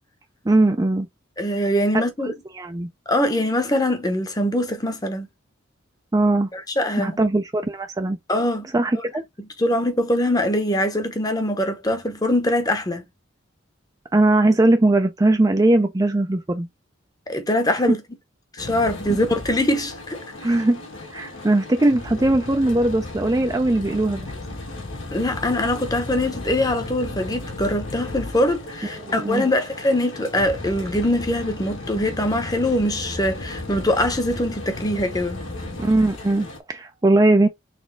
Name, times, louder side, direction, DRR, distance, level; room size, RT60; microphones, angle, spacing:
voice 1, 0.5-1.1 2.2-2.9 6.1-6.5 7.0-8.2 8.7-9.2 14.1-16.7 20.4-20.8 21.1-24.3 29.0-29.5 35.8-37.5, right 2 dB, 20° right, 0.4 m, -20 dB
voice 2, 1.4-2.3 3.1-5.3 6.5-7.2 8.3-8.7 9.6-13.0 17.3-18.0 18.6-20.6 25.1-35.4, left 1 dB, 20° left, 0.9 m, -23 dB
sound 1, 18.6-36.6, left 2 dB, 90° left, 1.7 m, -35 dB
4.2 x 3.5 x 3.2 m
head